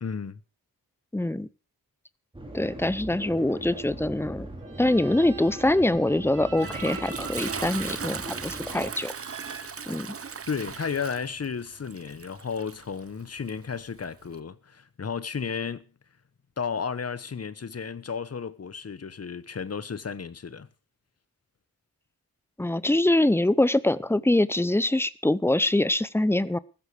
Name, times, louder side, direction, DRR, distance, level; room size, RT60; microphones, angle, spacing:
voice 1, 0.0-0.4 10.5-15.9 16.6-20.7, left 6 dB, 40° left, 1.0 m, -33 dB
voice 2, 1.1-1.5 2.5-4.5 4.8-9.1 9.9-10.2 22.6-26.6, left 1 dB, 5° left, 0.6 m, -24 dB
sound 1, 2.3-8.9, right 1 dB, 15° right, 4.8 m, -40 dB
sound 2, 4.6-10.6, right 5 dB, 55° right, 2.9 m, -44 dB
Toilet flush, 6.1-14.4, right 6 dB, 40° right, 0.9 m, -38 dB
15.5 x 13.0 x 4.8 m
wide cardioid pair, 170°, 37 cm